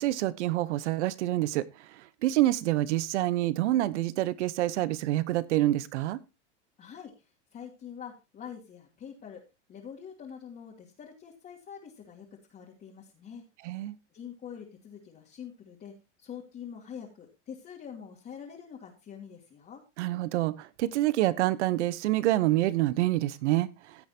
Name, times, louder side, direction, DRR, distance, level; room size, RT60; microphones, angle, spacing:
voice 1, 0.0-1.6 2.2-6.2 13.6-13.9 20.0-23.7, right 15 dB, 70° right, 1.1 m, -27 dB
voice 2, 6.8-7.1 7.5-9.4 9.7-13.4 14.1-15.9 16.2-19.8, left 8 dB, 25° left, 2.7 m, -45 dB
15.5 x 8.7 x 2.8 m
supercardioid pair, 135°, 36 cm